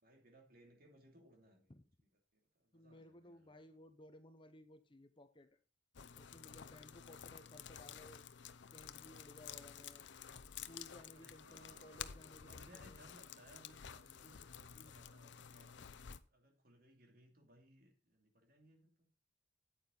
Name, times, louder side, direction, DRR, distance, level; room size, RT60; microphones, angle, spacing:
voice 1, 0.0-1.7 2.3-3.8 11.1-12.1 12.4-19.1, right 1 dB, 55° right, 3 dB, 2.7 m, -65 dB
voice 2, 2.7-5.5 6.1-8.2 8.7-10.1 10.6-13.1, left 1 dB, 25° left, 9 dB, 0.8 m, -59 dB
sound 1, 5.9-16.2, left 8 dB, 75° left, 0.6 m, -52 dB
9.0 x 8.9 x 3.9 m, 0.31 s
head